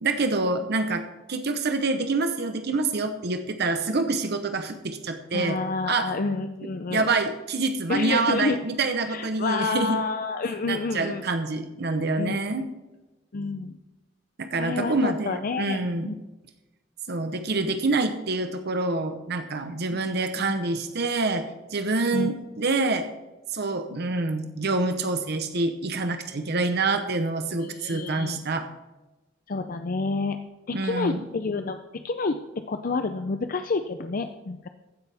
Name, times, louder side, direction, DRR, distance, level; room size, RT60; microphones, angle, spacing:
voice 1, 0.0-1.0 1.3-5.6 5.9-6.1 6.9-10.0 10.7-12.7 14.4-16.1 17.1-23.1 23.5-28.7 30.7-31.2, right 3 dB, 60° right, 8 dB, 0.9 m, -26 dB
voice 2, 5.3-7.1 7.9-8.6 9.1-11.2 12.2-12.7 13.3-13.8 14.6-16.1 19.9-20.0 20.4-20.5 22.1-22.3 27.6-28.4 29.5-30.4 30.7-31.8 32.0-32.4 32.7-34.7, left 3 dB, 45° left, 8 dB, 0.5 m, -29 dB
15.0 x 10.5 x 3.5 m, 1.1 s
head